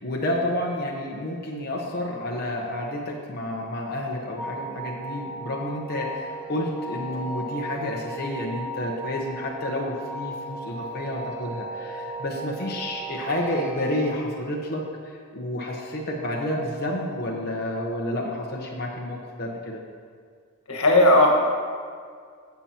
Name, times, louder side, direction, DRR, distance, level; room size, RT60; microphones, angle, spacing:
voice 1, 0.0-19.8, left 1 dB, 45° left, -2 dB, 1.0 m, -30 dB
sound 1, 4.4-14.2, right 2 dB, 5° right, 1.1 m, -36 dB
voice 2, 20.7-21.3, left 1 dB, 80° left, 1 dB, 1.5 m, -16 dB
16.0 x 7.0 x 2.9 m, 2.1 s
head